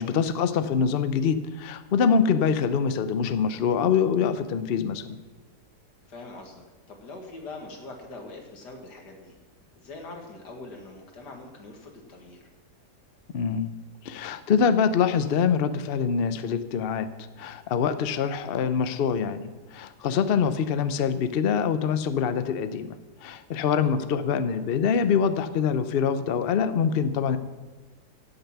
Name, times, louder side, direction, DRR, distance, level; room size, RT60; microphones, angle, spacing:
voice 1, 0.0-5.0 13.3-13.7 14.0-17.1 17.4-19.4 19.7-22.9 23.2-27.4, left 6 dB, 55° left, 11 dB, 0.6 m, -24 dB
voice 2, 6.1-9.3 9.8-12.5 23.7-23.9, left 2 dB, 85° left, 2 dB, 2.4 m, -43 dB
16.0 x 6.8 x 5.9 m, 1.3 s
omnidirectional pair, 1.8 m